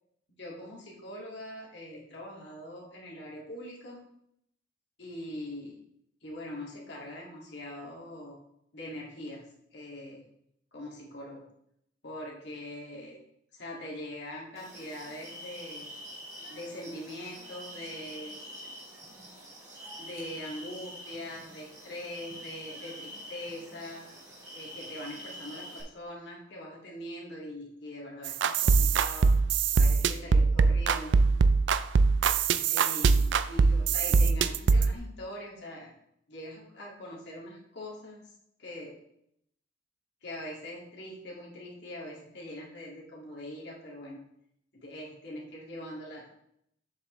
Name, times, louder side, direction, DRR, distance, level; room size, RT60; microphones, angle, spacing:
voice 1, 0.3-4.0 5.0-5.8 6.2-8.4 8.7-9.4 9.7-10.2 10.7-11.4 12.0-13.2 13.5-16.0 16.5-18.4 20.0-24.0 24.5-29.3 29.7-31.2 32.7-35.9 36.3-38.3 38.6-39.0 40.2-44.2 44.7-46.3, left 1 dB, 65° left, -3 dB, 2.1 m, -42 dB
sound 1, 14.5-25.8, equal, 20° right, 2.2 m, -46 dB
sound 2, 28.3-34.9, right 4 dB, 75° right, 0.4 m, -23 dB
7.5 x 6.6 x 3.1 m, 0.73 s
head